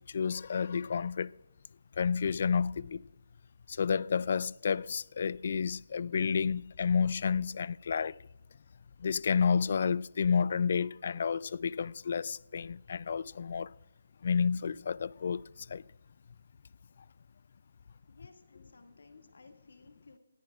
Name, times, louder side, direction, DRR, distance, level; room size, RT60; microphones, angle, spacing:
voice 1, 0.1-1.3 2.0-3.0 3.7-8.2 9.0-13.7 14.2-15.4 15.7-15.8, left 6 dB, 50° left, 0.3 m, -30 dB
voice 2, 18.1-20.2, left 3 dB, 70° left, 2.0 m, -57 dB
19.5 x 14.5 x 2.4 m
figure-of-eight pair, 155°, 0 cm